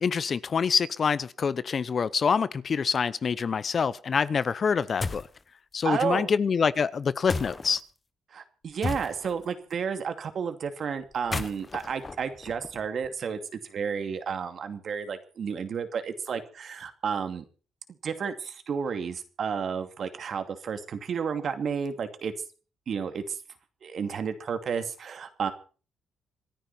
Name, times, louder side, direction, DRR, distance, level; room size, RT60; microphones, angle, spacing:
voice 1, 0.0-5.3 5.7-7.8, left 6 dB, 45° left, 0.7 m, -26 dB
sound 1, 5.0-5.4 7.3-7.8 8.8-9.4 11.1-13.1, left 3 dB, 30° left, 1.2 m, -34 dB
voice 2, 5.8-6.3 8.3-17.4 18.0-22.3 22.9-23.4 23.8-25.5, right 6 dB, 55° right, 2.5 m, -32 dB
26.5 x 9.9 x 4.3 m
cardioid pair, 90°, 0 cm